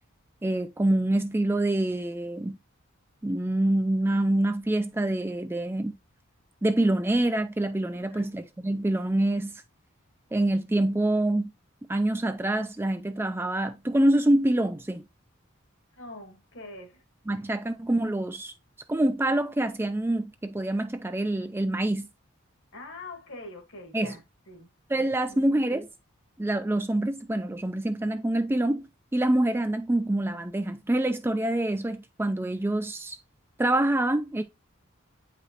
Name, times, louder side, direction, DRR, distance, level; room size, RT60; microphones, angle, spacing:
voice 1, 0.4-2.6 3.2-5.9 6.6-9.6 10.3-11.5 11.9-15.0 17.3-18.5 18.9-22.1 23.9-24.2 24.9-25.9 26.4-28.8 29.1-33.2 33.6-34.4, right 1 dB, 10° right, 0.3 m, -26 dB
voice 2, 8.0-8.3 15.9-17.0 22.7-24.7 25.3-25.7, left 2 dB, 60° left, 1.5 m, -44 dB
8.5 x 5.0 x 2.9 m
head